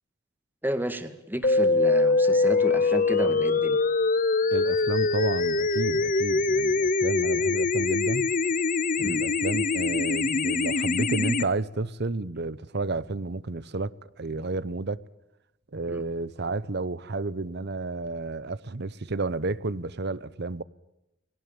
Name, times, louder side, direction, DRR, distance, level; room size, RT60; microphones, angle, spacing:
voice 1, 0.6-3.8 9.0-9.2 15.9-16.0, equal, 10° right, 2.0 m, -32 dB
sound 1, 1.4-11.4, left 3 dB, 45° left, 0.8 m, -23 dB
voice 2, 4.5-8.3 9.0-13.9 14.2-15.0 15.7-20.6, right 3 dB, 60° right, 0.9 m, -31 dB
21.5 x 18.5 x 8.9 m
head